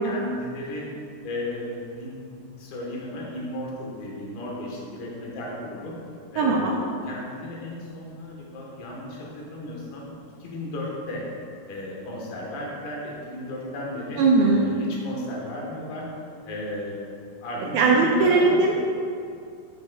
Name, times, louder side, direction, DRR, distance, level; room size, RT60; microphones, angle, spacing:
voice 1, 0.0-0.9 1.2-2.3 2.6-5.9 6.3-10.0 10.4-11.2 11.7-16.0 16.4-17.1 17.4-18.6, left 1 dB, 70° left, -3 dB, 3.1 m, -34 dB
voice 2, 6.4-6.8 14.2-14.6 17.7-18.7, right 3 dB, 85° right, -1 dB, 2.0 m, -19 dB
12.0 x 6.2 x 2.3 m, 2.4 s
omnidirectional pair, 4.8 m